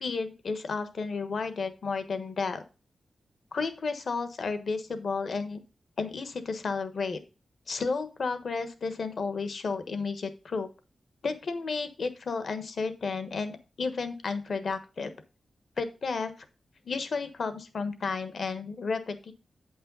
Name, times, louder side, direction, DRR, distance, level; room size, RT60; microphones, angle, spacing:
voice 1, 0.0-2.6 3.5-5.6 6.0-7.2 7.7-10.7 11.2-15.1 15.8-16.5 16.8-19.3, left 4 dB, 65° left, 10 dB, 1.2 m, -32 dB
8.7 x 5.5 x 3.9 m, 0.31 s
wide cardioid pair, 110°, 0 cm